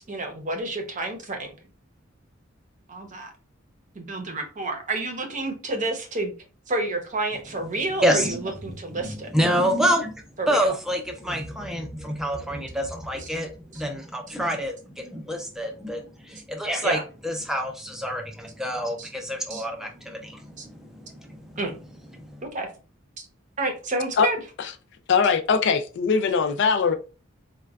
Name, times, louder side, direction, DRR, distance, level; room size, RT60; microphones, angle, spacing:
voice 1, 0.0-1.5 2.9-3.3 3.9-6.3 6.7-9.3 10.4-10.7 13.2-13.3 13.7-13.8 16.8-17.0 19.0-19.1 19.5-19.6 20.6-20.7 21.6-21.8 22.4-22.7 23.2-23.3 23.6-24.4, right 2 dB, 40° right, 0.7 m, -29 dB
voice 2, 8.0-10.1 10.5-21.6 22.1-22.4, equal, 5° right, 0.5 m, -27 dB
voice 3, 25.1-26.9, left 5 dB, 60° left, 0.4 m, -21 dB
4.1 x 2.2 x 2.3 m
head